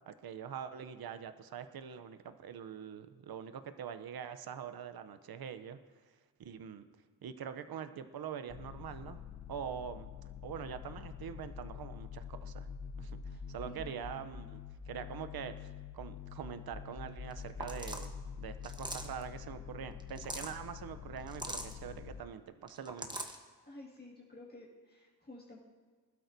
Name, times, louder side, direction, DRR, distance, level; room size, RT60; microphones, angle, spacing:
voice 1, 0.1-5.8 6.4-6.8 7.2-9.2 9.5-10.1 10.4-12.7 13.0-23.2, right 8 dB, 70° right, 10 dB, 0.7 m, -44 dB
sound 1, 8.5-22.2, left 7 dB, 50° left, 0.6 m, -46 dB
voice 2, 13.7-14.3 23.7-25.6, left 2 dB, 25° left, -4 dB, 1.9 m, -52 dB
sound 2, 17.3-17.4 17.6-18.1 18.6-19.2 20.0-20.5 21.3-21.7 22.7-23.4, right 1 dB, 10° right, 1.0 m, -41 dB
19.5 x 12.5 x 2.7 m, 1.5 s
wide cardioid pair, 115°, 38 cm